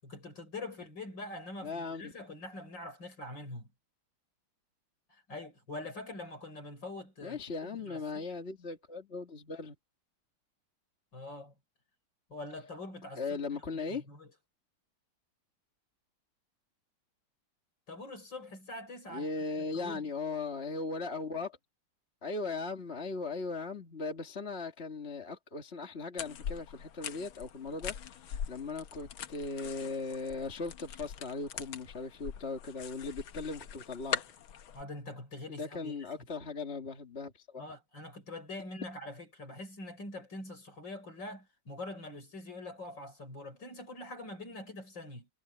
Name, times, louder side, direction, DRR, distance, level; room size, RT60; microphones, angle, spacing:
voice 1, 0.0-3.7 5.1-8.2 11.1-11.5 12.3-13.4 13.7-14.3 17.9-19.3 19.7-20.0 34.7-36.1 37.6-45.3, left 2 dB, 55° left, 6.7 m, -44 dB
voice 2, 1.6-2.1 7.2-9.8 13.2-14.1 19.1-21.6 22.2-34.2 35.5-37.6, left 4 dB, 30° left, 2.0 m, -38 dB
sound 1, 26.2-34.8, left 8 dB, 70° left, 2.0 m, -42 dB
omnidirectional pair, 2.3 m